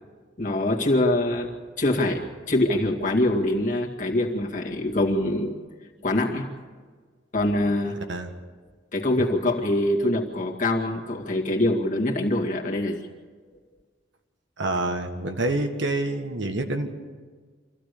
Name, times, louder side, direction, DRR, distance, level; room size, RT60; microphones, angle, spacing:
voice 1, 0.4-5.6 6.0-6.5 7.3-8.0 8.9-13.1, left 1 dB, 40° left, 1 dB, 2.2 m, -24 dB
voice 2, 14.6-16.9, right 2 dB, 70° right, 5 dB, 1.7 m, -27 dB
25.5 x 15.5 x 6.8 m, 1.5 s
head